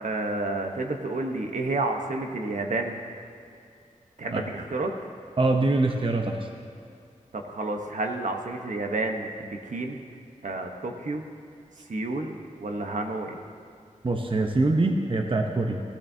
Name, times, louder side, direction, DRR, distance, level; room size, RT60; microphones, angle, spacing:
voice 1, 0.0-3.0 4.2-4.9 7.3-10.0 10.4-11.3 11.9-13.4, right 2 dB, 70° right, 3 dB, 1.0 m, -30 dB
voice 2, 5.4-6.5 14.0-15.8, right 2 dB, 40° right, 3 dB, 0.9 m, -24 dB
18.0 x 12.5 x 2.8 m, 2.4 s
wide cardioid pair, 75°, 14 cm